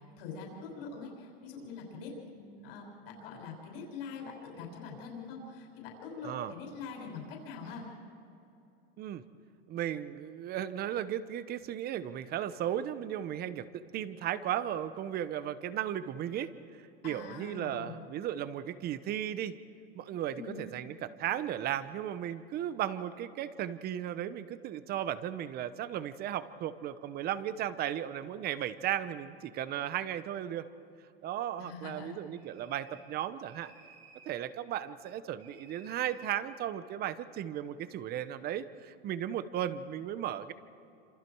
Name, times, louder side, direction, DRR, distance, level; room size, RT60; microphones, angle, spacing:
voice 1, 0.0-7.9 17.0-18.0 20.3-20.6 31.6-32.2, left 4 dB, 70° left, 0 dB, 6.4 m, -44 dB
voice 2, 9.7-19.5 19.9-30.7 31.2-33.7 34.3-40.5, right 11 dB, 30° right, 13 dB, 0.9 m, -35 dB
sound 1, 32.3-33.1 33.4-34.4 35.4-36.4, right 4 dB, 75° right, 7.6 m, -58 dB
27.5 x 27.0 x 4.8 m, 2.8 s
supercardioid pair, 140°, 31 cm